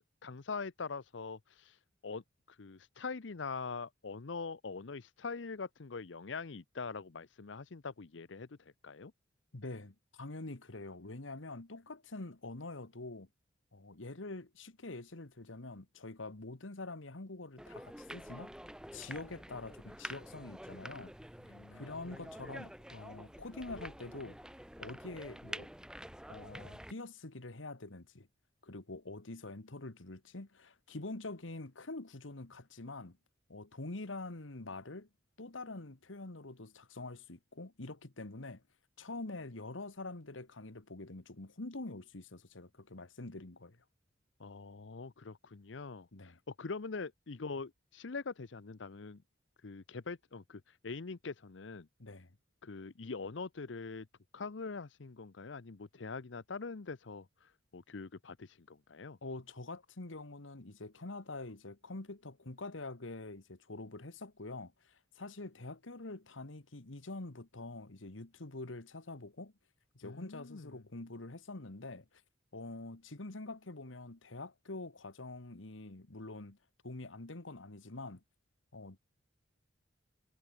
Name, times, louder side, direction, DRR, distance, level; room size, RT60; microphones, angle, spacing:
voice 1, 0.2-2.2 2.5-9.1 21.5-21.8 44.4-49.2 49.6-51.9 52.6-54.1 54.3-59.2 70.0-70.7, left 4 dB, 65° left, 0.7 m, -43 dB
voice 2, 9.5-13.3 13.7-18.5 18.9-21.1 21.7-24.4 24.8-25.7 26.3-28.3 28.6-33.2 33.5-35.1 35.4-38.6 39.0-43.8 46.1-46.4 52.0-52.3 59.2-69.5 69.9-72.1 72.5-76.6 76.8-78.2 78.7-79.0, left 2 dB, 85° left, 1.7 m, -45 dB
sound 1, 17.6-26.9, equal, 5° right, 3.0 m, -48 dB
head